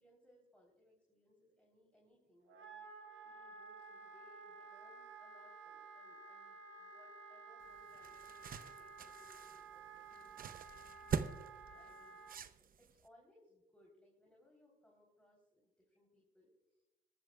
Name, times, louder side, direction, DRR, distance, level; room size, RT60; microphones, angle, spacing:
voice 1, 0.0-11.1 11.7-12.2 12.8-16.5 16.8-16.9, left 1 dB, 5° left, -2 dB, 3.7 m, -68 dB
Wind instrument woodwind instrument, 2.5-12.4, right 4 dB, 75° right, 1.4 m, -54 dB
sound 1, 7.6-13.1, right 7 dB, 45° right, 0.7 m, -44 dB
22.0 x 12.5 x 2.4 m, 0.96 s
cardioid pair, 90°, 20 cm